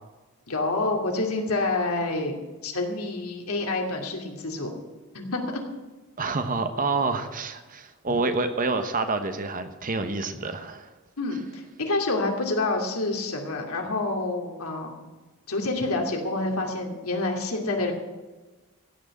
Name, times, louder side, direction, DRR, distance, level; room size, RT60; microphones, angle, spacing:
voice 1, 0.5-2.4 2.6-4.7 5.1-5.6 11.2-15.1 15.5-17.9, left 2 dB, 75° left, 2 dB, 2.6 m, -28 dB
voice 2, 6.2-10.9, right 3 dB, 40° right, 8 dB, 1.1 m, -28 dB
16.0 x 6.2 x 9.0 m, 1.2 s
head